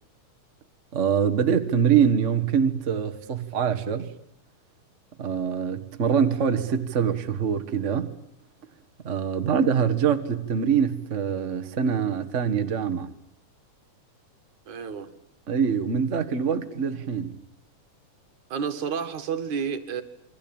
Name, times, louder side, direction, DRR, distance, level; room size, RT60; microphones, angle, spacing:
voice 1, 0.9-4.1 5.2-8.1 9.0-13.1 15.5-17.4, right 7 dB, 35° right, 1.2 m, -24 dB
voice 2, 14.7-15.1 16.8-16.9 18.5-20.0, right 7 dB, 70° right, 3.3 m, -30 dB
28.5 x 23.0 x 8.9 m
omnidirectional pair, 3.6 m